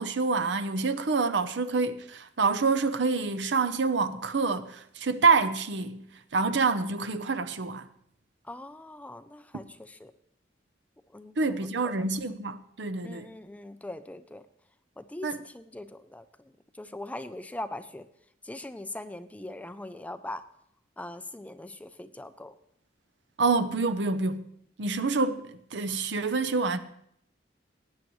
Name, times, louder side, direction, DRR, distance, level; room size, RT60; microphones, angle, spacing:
voice 1, 0.0-6.0 6.3-7.9 11.4-13.3 15.2-15.4 23.4-24.5 24.8-26.8, right 4 dB, 65° right, 0.7 m, -27 dB
voice 2, 8.4-10.1 11.1-11.9 13.0-14.4 15.0-18.1 18.4-20.4 21.0-22.6, left 1 dB, 10° left, 0.4 m, -41 dB
19.0 x 9.4 x 3.1 m
head